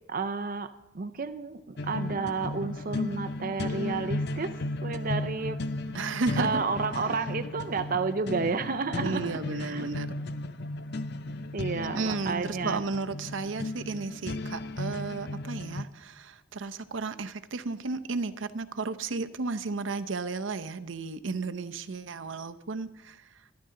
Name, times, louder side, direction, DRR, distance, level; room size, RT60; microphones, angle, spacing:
voice 1, 0.1-0.7 0.9-4.5 4.8-5.6 6.4-9.9 11.5-12.8, right 4 dB, 45° right, 10 dB, 0.6 m, -31 dB
sound 1, 1.8-15.8, left 2 dB, 60° left, 0.6 m, -35 dB
voice 2, 5.9-6.6 9.0-10.2 11.9-23.5, right 3 dB, 85° right, 10 dB, 0.7 m, -33 dB
25.5 x 10.5 x 3.8 m, 0.94 s
head